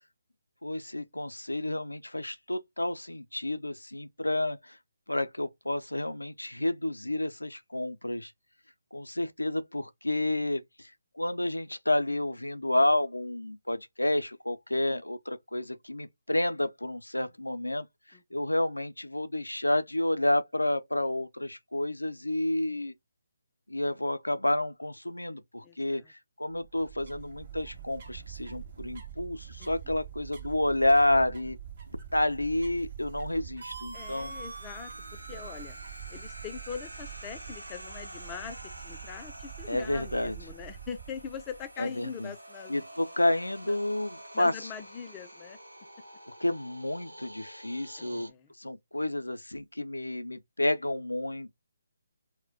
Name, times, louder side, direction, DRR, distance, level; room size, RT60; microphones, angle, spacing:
voice 1, 0.6-4.8 5.1-8.3 8.9-17.9 18.3-22.9 23.7-31.6 32.1-34.3 39.7-40.3 41.8-42.3 42.7-44.5 46.4-48.3 48.6-51.5, left 1 dB, 85° left, 0.4 m, -30 dB
voice 2, 18.1-18.5 25.6-26.1 29.6-30.0 33.9-35.8 36.1-38.6 38.8-42.8 43.6-43.8 44.3-45.6 48.0-48.5, left 7 dB, 20° left, 0.4 m, -42 dB
sound 1, 26.5-41.7, right 9 dB, 40° right, 0.8 m, -45 dB
sound 2, 33.6-39.4, right 3 dB, 65° right, 0.5 m, -47 dB
sound 3, 33.9-48.3, right 1 dB, 90° right, 0.9 m, -48 dB
2.2 x 2.1 x 3.7 m
figure-of-eight pair, 145°, 0 cm